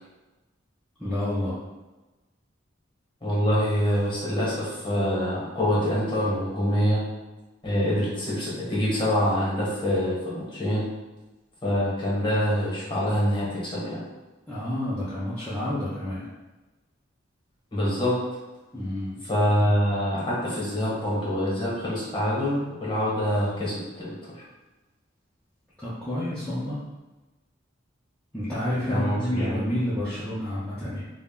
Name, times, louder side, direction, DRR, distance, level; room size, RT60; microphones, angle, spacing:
voice 1, 1.0-1.6 14.5-16.3 18.7-19.2 25.8-26.8 28.3-31.0, left 1 dB, 5° left, -12 dB, 0.4 m, -29 dB
voice 2, 3.2-7.0 7.6-10.9 11.6-14.0 17.7-18.2 19.3-24.4 28.9-29.6, equal, 25° left, -7 dB, 0.9 m, -25 dB
2.3 x 2.0 x 3.5 m, 1.1 s
head